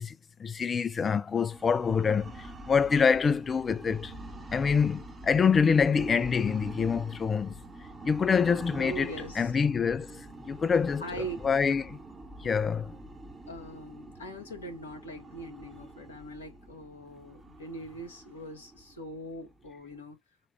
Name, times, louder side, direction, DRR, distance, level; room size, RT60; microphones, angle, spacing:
voice 1, 0.0-4.1 4.5-7.5 8.0-11.0 11.4-12.0 12.4-12.9, left 6 dB, 20° left, 0.3 m, -26 dB
sound 1, 1.2-20.0, right 2 dB, 10° right, 1.0 m, -45 dB
voice 2, 8.8-9.5 11.0-11.4 13.5-20.2, right 1 dB, 70° left, 1.7 m, -41 dB
6.4 x 2.4 x 2.7 m
figure-of-eight pair, 90°, 0 cm